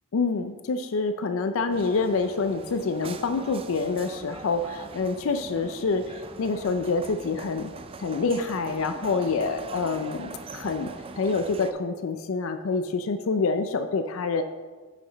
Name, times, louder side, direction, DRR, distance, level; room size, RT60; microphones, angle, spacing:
voice 1, 0.1-6.0 6.4-7.7 8.0-10.9 11.2-14.4, left 4 dB, 70° left, 8 dB, 0.4 m, -27 dB
sound 1, 1.7-11.7, right 4 dB, 25° right, 0.3 m, -41 dB
8.2 x 5.8 x 4.0 m, 1.4 s
head